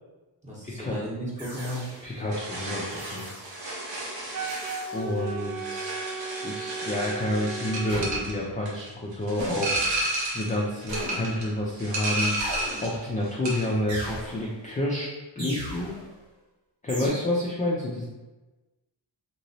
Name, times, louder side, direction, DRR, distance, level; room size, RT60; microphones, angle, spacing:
voice 1, 0.4-1.9, equal, 15° right, -6 dB, 0.8 m, -34 dB
sound 1, 1.4-2.2 2.9-3.7 4.4-5.2 7.9-8.6 9.4-10.1 10.9-11.6 12.4-13.2 13.9-14.7 15.4-16.1 16.9-17.1, equal, 85° right, 1.4 m, -37 dB
voice 2, 2.0-3.3 4.9-5.9 6.4-9.8 10.3-12.3 12.8-15.1 15.4-15.9 16.8-18.0, left 1 dB, 20° left, -4 dB, 0.4 m, -29 dB
sound 2, 2.3-13.0 13.3-13.8, right 1 dB, 70° right, 1.0 m, -32 dB
Wind instrument woodwind instrument, 4.3-8.3, right 4 dB, 50° right, 0.4 m, -36 dB
3.0 x 2.9 x 2.7 m, 1.1 s
wide cardioid pair, 140°, 45 cm